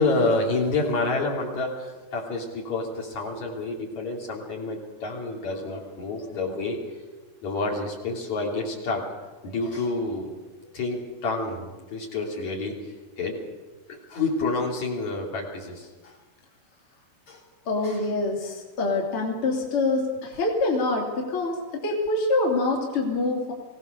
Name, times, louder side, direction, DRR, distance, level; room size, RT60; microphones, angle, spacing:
voice 1, 0.0-6.8 7.4-9.0 9.4-10.3 10.7-13.4 14.1-16.2 17.3-17.4 17.8-18.0, left 3 dB, 60° left, -1 dB, 4.6 m, -28 dB
voice 2, 17.7-23.5, left 2 dB, 40° left, -1 dB, 3.5 m, -25 dB
24.0 x 17.5 x 6.8 m, 1.2 s
omnidirectional pair, 3.7 m